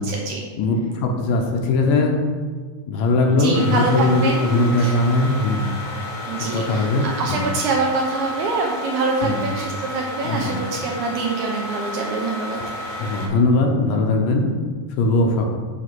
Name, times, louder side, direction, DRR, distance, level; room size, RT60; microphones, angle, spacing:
voice 1, 0.0-0.4 3.3-4.5 4.8-5.0 6.3-12.6, right 3 dB, 75° right, -1 dB, 1.8 m, -25 dB
voice 2, 0.6-2.2 2.9-5.7 6.4-7.4 9.2-9.4 10.2-10.5 12.6-12.7 13.0-14.4 15.0-15.5, left 2 dB, 75° left, 2 dB, 2.2 m, -20 dB
sound 1, 3.5-13.3, left 1 dB, 60° left, 1.4 m, -32 dB
7.6 x 3.3 x 6.1 m, 1.5 s
omnidirectional pair, 4.0 m